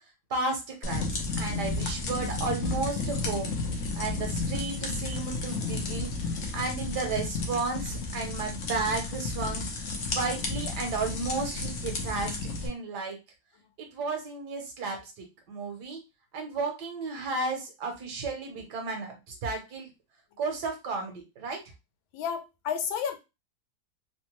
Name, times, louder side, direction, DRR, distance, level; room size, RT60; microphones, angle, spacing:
voice 1, 0.3-3.5 3.9-9.7 10.1-13.2 13.8-16.0 16.3-19.9 20.4-21.6, right 3 dB, 65° right, 1.3 m, -33 dB
sound 1, 0.8-12.7, left 3 dB, 70° left, 0.7 m, -32 dB
voice 2, 22.1-23.2, left 7 dB, 85° left, 1.4 m, -31 dB
3.4 x 2.1 x 2.9 m
omnidirectional pair, 2.1 m